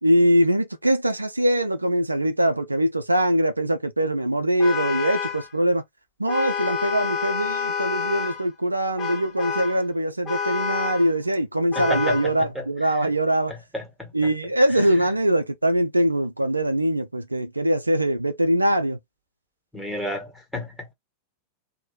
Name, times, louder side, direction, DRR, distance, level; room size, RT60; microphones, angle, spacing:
voice 1, 0.0-5.8 6.2-13.5 14.1-19.0, right 1 dB, 85° right, 0.4 m, -22 dB
Vehicle horn car horn honking, 4.6-5.5 6.3-8.5 9.0-9.8 10.3-11.1 11.7-12.3, left 6 dB, 20° left, 0.9 m, -28 dB
voice 2, 11.7-13.1 13.7-14.1 19.7-20.9, left 1 dB, ahead, 1.4 m, -32 dB
3.0 x 2.2 x 3.7 m
figure-of-eight pair, 90°, 0 cm